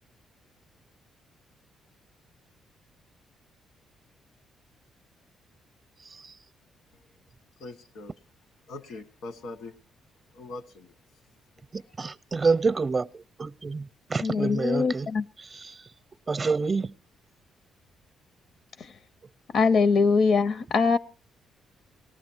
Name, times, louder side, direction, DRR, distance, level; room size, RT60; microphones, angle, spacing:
voice 1, 7.6-8.1 8.7-9.7 10.3-10.9 11.7-11.8, left 2 dB, 85° left, 1.4 m, -41 dB
voice 2, 11.7-15.1 15.7-15.8 16.3-16.9, right 4 dB, 30° right, 0.6 m, -28 dB
voice 3, 14.2-15.3 18.8-19.0 19.5-21.0, left 4 dB, 60° left, 0.6 m, -22 dB
19.0 x 14.0 x 4.6 m
cardioid pair, 90°, 0 cm